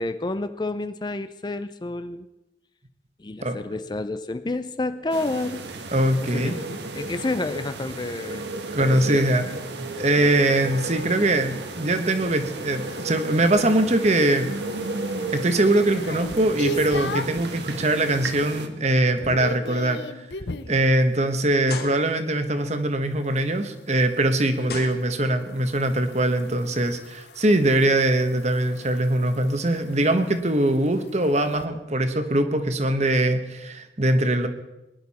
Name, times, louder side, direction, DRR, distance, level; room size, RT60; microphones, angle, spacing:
voice 1, 0.0-2.3 3.2-5.7 6.2-8.4 8.8-9.4 24.7-24.8, left 2 dB, 25° left, 11 dB, 0.5 m, -30 dB
sound 1, 5.1-18.7, right 2 dB, 75° right, 1.3 m, -34 dB
voice 2, 5.9-6.5 8.7-9.4 9.8-14.5 15.3-20.3 20.7-34.5, right 1 dB, 40° right, 8 dB, 1.1 m, -22 dB
sound 2, 13.4-17.5 18.0-18.4 18.7-20.8 23.3-31.7, left 1 dB, 75° left, 0.7 m, -38 dB
sound 3, 18.8-18.9 19.3-19.5 20.2-20.3 21.7-22.4 23.9-24.0 24.7-25.6, left 4 dB, 60° left, 1.3 m, -37 dB
20.5 x 11.0 x 4.2 m, 0.96 s
head